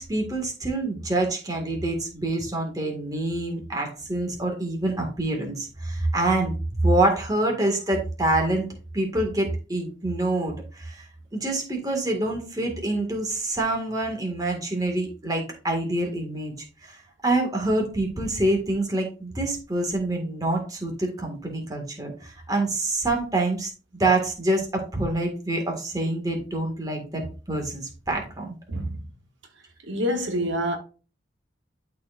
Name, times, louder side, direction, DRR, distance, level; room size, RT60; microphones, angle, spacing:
voice 1, 0.0-6.5 6.8-8.7 8.9-11.0 11.3-16.5 16.8-23.7 24.0-28.5, right 2 dB, 20° right, 1.8 m, -26 dB
voice 2, 28.7-29.1 29.8-30.8, equal, 75° right, 1.1 m, -27 dB
12.0 x 4.6 x 2.5 m
head